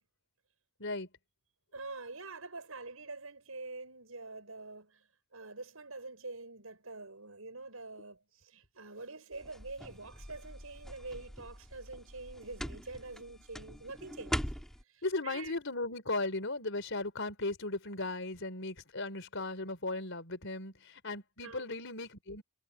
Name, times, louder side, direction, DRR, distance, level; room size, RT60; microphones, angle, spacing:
voice 1, 1.7-5.0 5.3-14.5 14.9-15.6 21.4-21.7, right 3 dB, 80° right, 6.6 m, -46 dB
sound 1, 9.3-14.8, equal, ahead, 2.8 m, -42 dB
voice 2, 15.0-22.4, left 2 dB, 60° left, 5.0 m, -37 dB
head